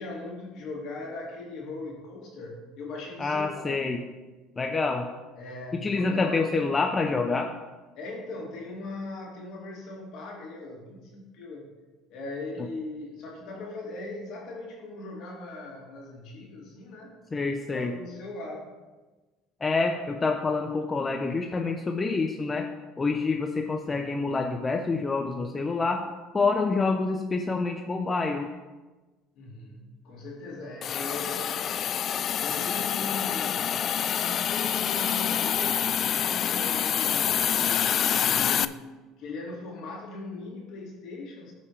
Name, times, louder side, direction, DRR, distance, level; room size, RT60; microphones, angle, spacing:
voice 1, 0.0-3.8 5.4-6.6 7.9-11.7 12.1-17.1 17.7-18.7 29.3-31.7 32.4-33.7 34.0-38.8 39.2-41.5, left 2 dB, 60° left, -2 dB, 3.0 m, -39 dB
voice 2, 3.2-4.0 4.6-5.1 5.8-7.5 17.3-17.9 19.6-22.7 23.0-26.0 26.3-28.5, left 3 dB, 25° left, 3 dB, 0.7 m, -27 dB
Hiss, 30.8-38.6, left 9 dB, 45° left, 0.3 m, -26 dB
15.5 x 5.4 x 3.4 m, 1.2 s
supercardioid pair, 90°, 0 cm